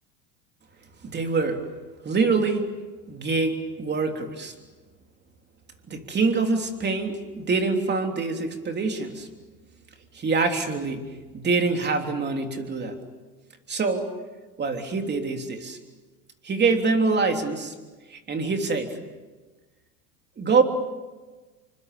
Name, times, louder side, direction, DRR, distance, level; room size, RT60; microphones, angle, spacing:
voice 1, 1.0-1.6 2.0-2.7 3.1-4.5 5.9-9.3 10.1-13.0 13.7-14.1 14.6-15.8 16.4-17.7 18.1-19.0 20.4-20.6, right 4 dB, 20° right, 4 dB, 3.4 m, -25 dB
28.5 x 24.5 x 7.0 m, 1.3 s
supercardioid pair, 125°, 48 cm